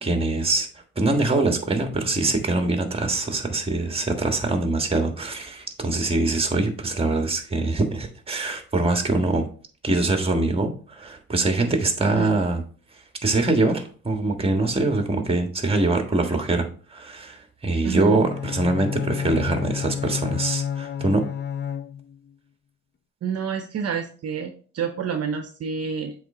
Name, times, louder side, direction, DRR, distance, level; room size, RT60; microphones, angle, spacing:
voice 1, 0.0-0.7 0.9-9.5 9.8-12.6 13.2-21.2, right 2 dB, 20° right, 5 dB, 1.4 m, -23 dB
voice 2, 12.0-12.3 17.8-18.1 23.2-26.1, right 6 dB, 55° right, 7 dB, 0.7 m, -29 dB
Bowed string instrument, 18.1-22.3, left 8 dB, 35° left, 0.5 m, -30 dB
7.7 x 3.3 x 3.7 m, 0.41 s
cardioid pair, 90°, 30 cm